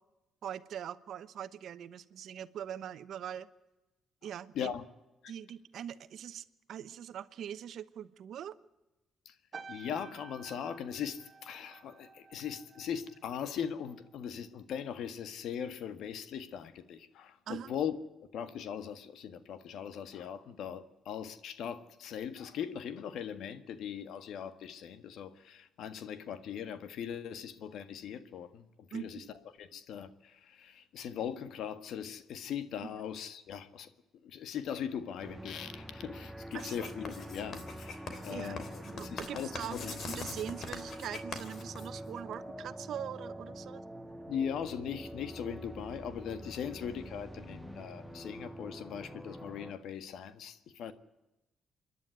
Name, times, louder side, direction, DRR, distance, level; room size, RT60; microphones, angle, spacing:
voice 1, 0.4-3.5 4.2-4.7 5.3-8.5 17.5-17.7 28.9-29.3 32.8-33.0 36.5-36.9 38.3-43.8, right 9 dB, 70° right, 1.0 m, -42 dB
sound 1, 9.5-14.1 14.4-14.8, right 5 dB, 45° right, 1.5 m, -52 dB
voice 2, 9.7-18.0 18.3-29.2 29.6-33.9 34.2-40.0 44.3-50.9, left 8 dB, 75° left, 1.6 m, -40 dB
sound 2, 35.2-49.7, right 1 dB, ahead, 1.6 m, -46 dB
Writing, 36.5-42.3, left 4 dB, 60° left, 3.3 m, -43 dB
27.5 x 11.0 x 9.2 m
cardioid pair, 90°, 0 cm